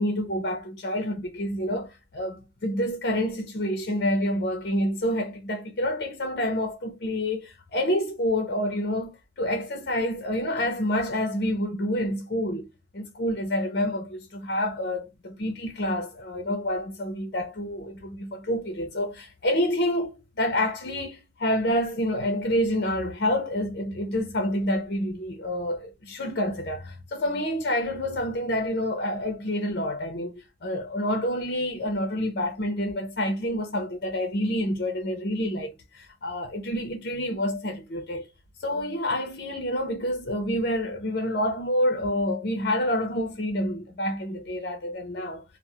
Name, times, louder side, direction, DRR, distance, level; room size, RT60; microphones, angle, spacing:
voice 1, 0.0-12.7 12.9-38.3 38.6-45.4, left 1 dB, 60° left, 0.6 m, -28 dB
2.3 x 2.0 x 2.8 m
head